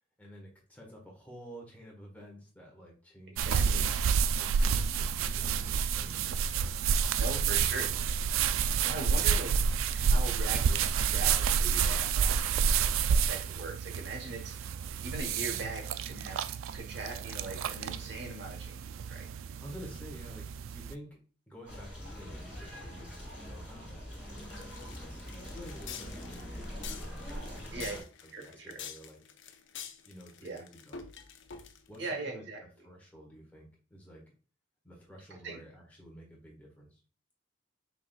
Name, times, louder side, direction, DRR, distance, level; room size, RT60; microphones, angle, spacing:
voice 1, 0.2-3.8 4.4-6.8 9.4-9.7 19.6-21.1 21.5-28.0 28.4-29.2 30.0-31.0 31.9-32.4 32.8-34.2 34.8-37.0, equal, 10° left, -2 dB, 1.5 m, -51 dB
voice 2, 3.3-3.9 7.1-7.9 8.8-9.5 9.9-12.6 13.1-14.6 15.0-16.4 16.7-19.3 27.7-28.0 28.3-28.8 30.4-30.6 32.0-32.6 35.3-35.6, right 2 dB, 60° right, 5 dB, 1.1 m, -40 dB
sound 1, 3.4-20.9, right 6 dB, 80° right, 0.3 m, -29 dB
sound 2, 21.7-28.0, equal, 10° right, 2.2 m, -43 dB
sound 3, 24.4-32.0, left 7 dB, 65° left, 0.6 m, -47 dB
5.9 x 3.9 x 2.3 m, 0.37 s
head